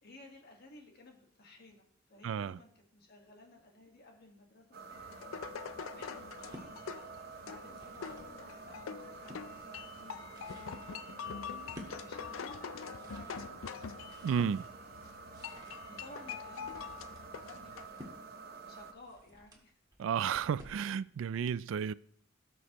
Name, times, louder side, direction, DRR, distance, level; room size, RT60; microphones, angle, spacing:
voice 1, 0.0-5.0 5.9-6.8 7.4-10.8 11.4-13.9 15.5-18.1 18.4-19.7, left 2 dB, 50° left, 1.6 m, -56 dB
voice 2, 2.2-2.6 14.2-14.7 20.0-21.9, right 7 dB, 70° right, 0.3 m, -32 dB
sound 1, 4.7-18.9, right 5 dB, 50° right, 0.8 m, -49 dB
sound 2, 4.9-17.9, left 6 dB, 80° left, 0.5 m, -45 dB
sound 3, 6.4-6.7 7.5-8.4 8.8-9.5 10.0-20.9, equal, 20° right, 1.7 m, -54 dB
17.5 x 6.3 x 3.0 m
head